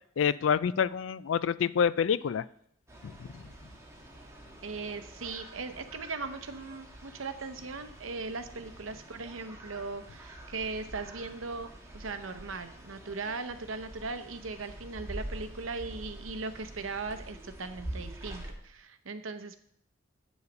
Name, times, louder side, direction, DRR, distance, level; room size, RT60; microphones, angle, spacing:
voice 1, 0.2-2.4 3.0-3.3, left 7 dB, 70° left, 18 dB, 0.4 m, -27 dB
sound 1, 2.9-18.5, right 1 dB, 15° right, 1.5 m, -46 dB
voice 2, 4.6-19.6, right 4 dB, 85° right, 9 dB, 0.8 m, -39 dB
8.3 x 7.1 x 5.2 m, 0.68 s
head